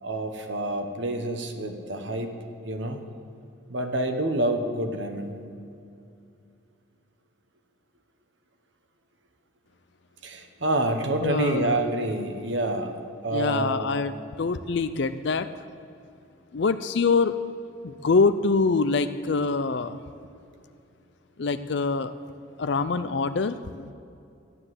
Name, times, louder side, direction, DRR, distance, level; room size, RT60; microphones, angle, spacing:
voice 1, 0.0-2.4 2.6-3.0 3.7-5.3 10.2-14.0, right 1 dB, 60° right, 5 dB, 1.2 m, -28 dB
voice 2, 11.2-11.8 13.3-14.1 14.4-15.5 16.5-17.4 17.8-20.0 21.4-22.1 22.6-23.9, left 4 dB, 55° left, 11 dB, 0.4 m, -24 dB
14.0 x 10.0 x 7.8 m, 2.6 s
head